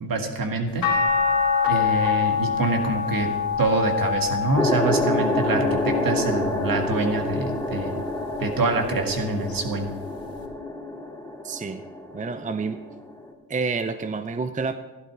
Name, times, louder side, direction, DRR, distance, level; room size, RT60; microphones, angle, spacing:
voice 1, 0.0-0.8 1.7-3.3 3.6-8.0 8.4-9.9, right 3 dB, 55° right, 4 dB, 2.0 m, -25 dB
sound 1, 0.8-7.1 7.7-9.0 10.4-10.5, left 6 dB, 55° left, 2.8 m, -26 dB
sound 2, 4.5-13.3, left 1 dB, 5° left, 2.2 m, -28 dB
voice 2, 11.4-11.8 12.1-12.8 13.5-14.7, right 4 dB, 20° right, 10 dB, 0.6 m, -28 dB
12.0 x 11.0 x 4.8 m, 1.2 s
supercardioid pair, 50°, 41 cm